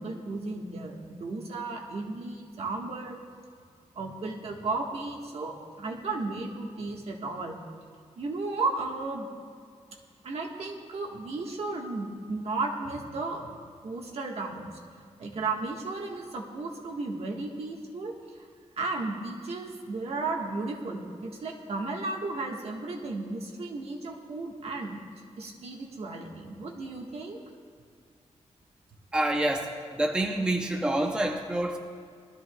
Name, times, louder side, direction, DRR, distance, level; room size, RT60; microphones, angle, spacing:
voice 1, 0.0-3.2 3.9-7.6 8.2-9.3 10.2-13.6 13.8-14.7 15.2-18.1 18.8-25.0 25.4-27.4, right 3 dB, 55° right, 0 dB, 1.5 m, -34 dB
voice 2, 29.1-31.8, right 1 dB, 5° right, 3 dB, 0.6 m, -27 dB
20.5 x 13.0 x 2.3 m, 2.2 s
wide cardioid pair, 160°, 12 cm